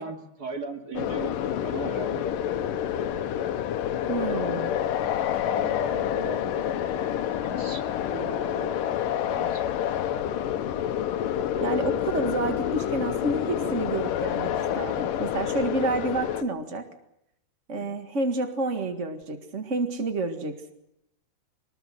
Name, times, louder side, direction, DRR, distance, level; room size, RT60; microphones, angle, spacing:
voice 1, 0.0-1.3 1.6-2.5 5.4-9.7 17.7-17.9, right 4 dB, 30° right, 5 dB, 2.5 m, -39 dB
sound 1, 0.9-16.4, left 10 dB, 70° left, 2.5 m, -28 dB
voice 2, 4.1-4.8 11.6-16.8 17.7-20.7, right 2 dB, 50° right, 7 dB, 0.8 m, -29 dB
24.5 x 20.5 x 7.8 m, 0.80 s
omnidirectional pair, 4.5 m